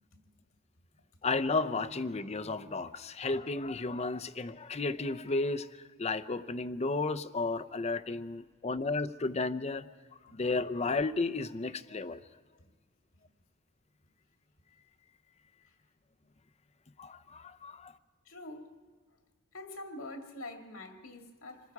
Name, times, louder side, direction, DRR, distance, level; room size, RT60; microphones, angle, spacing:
voice 1, 1.2-5.7 6.0-9.9 10.3-12.2 17.0-17.9, left 3 dB, 30° left, 0.6 m, -33 dB
voice 2, 18.3-18.7 19.5-21.7, left 2 dB, 85° left, 2.2 m, -45 dB
27.0 x 20.0 x 4.8 m
head